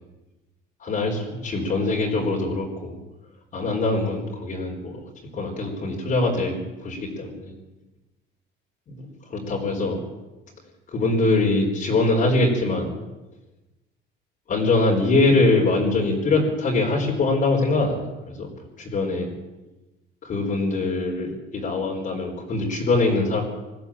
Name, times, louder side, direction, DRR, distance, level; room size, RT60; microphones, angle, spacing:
voice 1, 0.8-3.0 3.5-5.0 5.3-6.5 6.8-7.5 8.9-9.0 9.3-10.0 10.9-12.9 14.5-18.5 18.8-19.3 20.2-23.4, left 2 dB, 40° left, -1 dB, 4.4 m, -23 dB
20.5 x 15.0 x 8.7 m, 1.1 s
cardioid pair, 135°, 20 cm